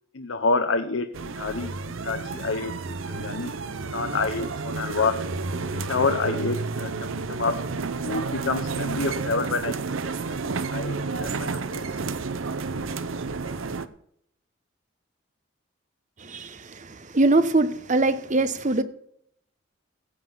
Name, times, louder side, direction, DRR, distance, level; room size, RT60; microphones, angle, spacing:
voice 1, 0.1-5.2 5.6-6.9 7.3-7.7 8.0-9.8 10.0-11.9, left 4 dB, 75° left, 0.8 m, -28 dB
sound 1, 1.1-13.9, right 4 dB, 80° right, 0.7 m, -31 dB
voice 2, 16.2-18.8, right 2 dB, 40° right, 0.9 m, -23 dB
16.0 x 7.6 x 5.5 m
head